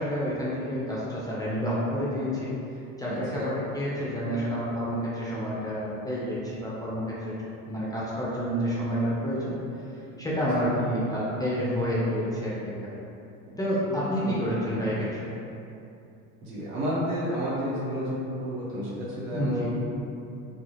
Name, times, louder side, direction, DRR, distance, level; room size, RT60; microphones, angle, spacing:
voice 1, 0.0-2.5 3.0-7.4 7.6-9.5 10.2-12.9 13.6-15.3 19.3-19.7, equal, 10° left, -8 dB, 0.5 m, -29 dB
voice 2, 3.1-3.5 10.4-10.7 13.5-13.6 13.9-14.4 16.4-19.8, equal, 70° right, -8 dB, 1.1 m, -31 dB
2.4 x 2.3 x 3.1 m, 2.7 s
hypercardioid pair, 90°, 39 cm